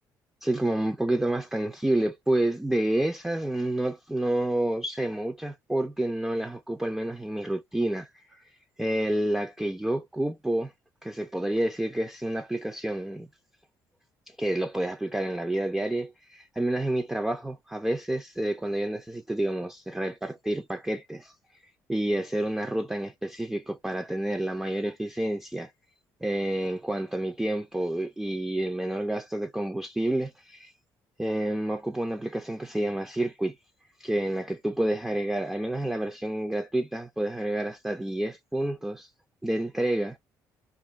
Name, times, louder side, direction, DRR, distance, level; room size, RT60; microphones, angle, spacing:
voice 1, 0.4-8.5 8.8-10.7 11.0-13.3 14.3-21.6 21.9-25.7 26.2-30.7 31.2-33.6 34.0-39.1 39.4-40.2, right 1 dB, 5° right, 0.4 m, -29 dB
2.4 x 2.2 x 3.1 m
cardioid pair, 90°, 7 cm